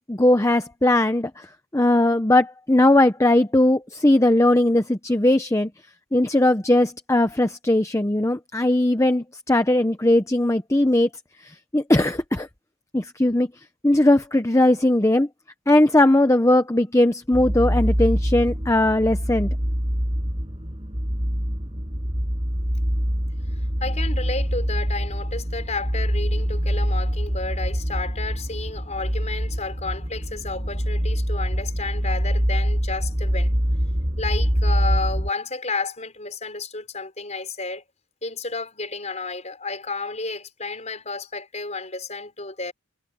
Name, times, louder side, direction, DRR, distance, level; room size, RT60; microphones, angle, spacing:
voice 1, 0.1-1.5 1.7-5.7 6.1-11.1 11.4-12.5 12.9-13.5 13.8-15.3 15.7-19.5, left 1 dB, 15° left, 0.7 m, -19 dB
sound 1, 17.3-35.3, equal, 25° right, 6.0 m, -25 dB
voice 2, 23.8-33.5 34.2-37.8 38.2-42.7, left 3 dB, 30° left, 5.2 m, -31 dB
head